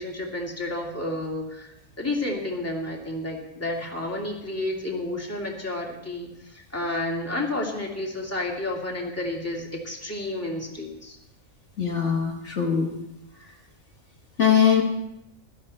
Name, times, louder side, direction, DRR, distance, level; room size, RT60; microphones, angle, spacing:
voice 1, 0.0-11.2, left 1 dB, 10° left, -2 dB, 2.5 m, -31 dB
voice 2, 11.8-13.0 14.4-14.8, left 7 dB, 60° left, 1 dB, 1.8 m, -21 dB
16.0 x 12.5 x 4.3 m, 0.84 s
omnidirectional pair, 1.4 m